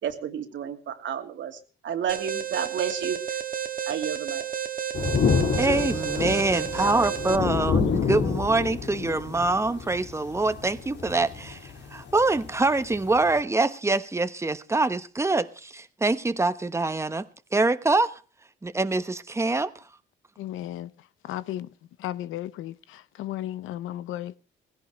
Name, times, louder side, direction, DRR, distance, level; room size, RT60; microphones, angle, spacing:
voice 1, 0.0-3.4 3.9-4.5, right 8 dB, 70° right, 2.7 m, -31 dB
Alarm, 2.1-7.4, right 9 dB, 45° right, 1.9 m, -31 dB
sound 1, 4.9-13.4, left 6 dB, 65° left, 2.9 m, -28 dB
voice 2, 5.5-17.3 17.5-18.2 18.6-19.7, right 3 dB, 15° right, 1.1 m, -25 dB
voice 3, 20.4-20.9 21.3-21.7 22.0-22.7 23.2-24.4, left 13 dB, 90° left, 0.9 m, -33 dB
19.0 x 16.5 x 3.2 m
cardioid pair, 90°, 20 cm